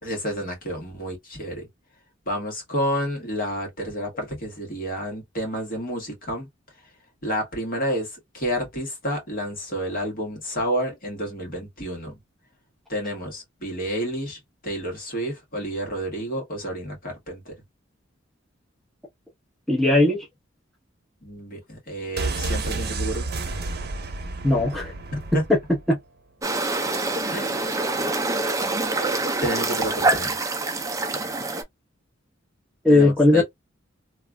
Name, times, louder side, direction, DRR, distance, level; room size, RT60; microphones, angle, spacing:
voice 1, 0.0-1.7 2.3-6.5 7.2-12.1 12.9-17.6 21.2-23.3 25.1-25.4 27.3-27.7 29.4-30.4 32.9-33.4, equal, 45° left, 1.5 m, -30 dB
voice 2, 19.7-20.2 24.4-24.9 25.9-26.0 32.8-33.4, left 2 dB, ahead, 0.8 m, -18 dB
sound 1, 22.2-25.9 26.2-26.3, right 3 dB, 50° right, 0.8 m, -30 dB
sound 2, 26.4-31.6, right 2 dB, 15° right, 0.5 m, -25 dB
3.1 x 2.4 x 2.2 m
head